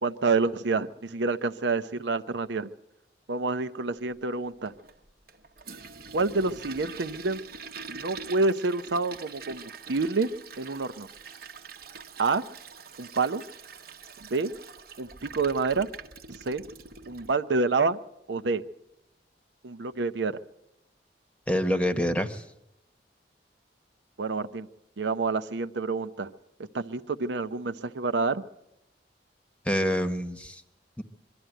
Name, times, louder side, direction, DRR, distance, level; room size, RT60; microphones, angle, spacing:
voice 1, 0.0-2.7 3.3-4.7 6.1-7.4 7.9-10.3 10.6-11.1 12.2-12.4 13.0-13.4 14.3-14.5 15.0-15.9 16.3-16.6 17.1-18.0 18.3-18.6 19.6-20.4 24.2-24.7 25.0-26.3 26.7-28.4, right 3 dB, 80° right, 10 dB, 0.7 m, -28 dB
Toilet flush, 4.6-17.3, right 5 dB, 55° right, 1.0 m, -45 dB
voice 2, 21.5-22.4 29.6-30.6 31.0-31.1, equal, 5° left, 9 dB, 1.0 m, -26 dB
23.0 x 12.5 x 9.1 m, 0.85 s
head